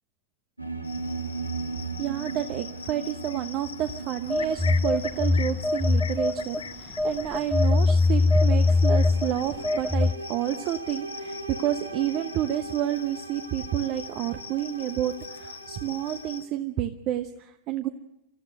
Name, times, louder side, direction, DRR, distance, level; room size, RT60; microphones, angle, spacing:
sound 1, 0.6-16.4, right 4 dB, 85° right, 1.6 m, -39 dB
Cricket, 0.8-16.5, left 6 dB, 70° left, 1.2 m, -43 dB
voice 1, 2.0-17.9, right 12 dB, 40° right, 9 dB, 1.0 m, -30 dB
Telephone, 4.3-6.6 7.0-10.1, left 3 dB, ahead, 0.7 m, -22 dB
25.0 x 14.0 x 7.9 m, 0.88 s
figure-of-eight pair, 90°, 0 cm